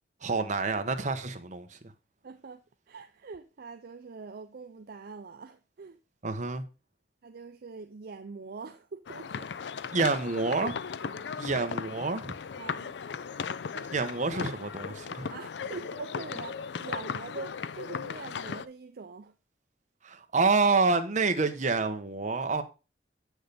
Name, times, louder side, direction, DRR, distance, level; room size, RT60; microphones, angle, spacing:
voice 1, 0.2-1.8 6.2-6.6 9.9-10.8 11.4-12.3 13.9-15.3 20.0-22.6, right 3 dB, 45° right, 1.0 m, -28 dB
voice 2, 2.2-2.6 2.9-6.0 7.2-9.5 11.0-11.3 12.6-12.9 13.7-13.9 15.2-19.3, right 4 dB, 60° right, 0.5 m, -44 dB
sound 1, 9.1-18.7, left 6 dB, 70° left, 0.4 m, -37 dB
8.1 x 6.4 x 3.3 m
head